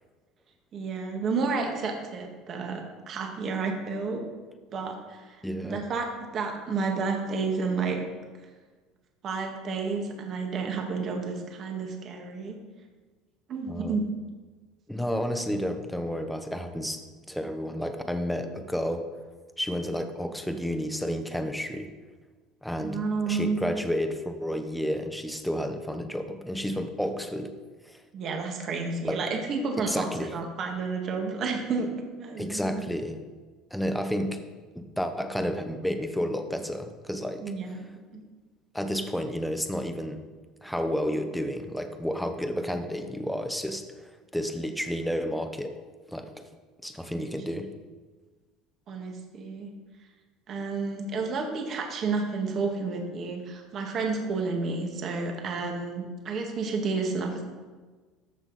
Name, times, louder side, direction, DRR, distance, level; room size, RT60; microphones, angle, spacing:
voice 1, 0.7-4.2 4.7-6.1 6.3-8.0 9.2-12.6 13.5-14.0 22.8-23.6 28.1-31.9 32.1-32.8 37.4-37.8 38.1-38.2 47.1-47.3 48.9-49.7 50.5-57.4, right 4 dB, 45° right, 2 dB, 1.7 m, -31 dB
voice 2, 5.4-5.8 13.7-14.0 14.9-17.0 17.3-19.1 19.6-21.9 22.6-27.5 27.8-28.0 29.0-29.3 29.8-30.3 32.4-33.2 33.7-34.4 34.7-37.8 38.7-40.2 40.6-45.8 46.1-46.3 46.8-47.8, equal, ahead, 7 dB, 1.0 m, -31 dB
13.5 x 6.0 x 4.1 m, 1.4 s
supercardioid pair, 110°, 0 cm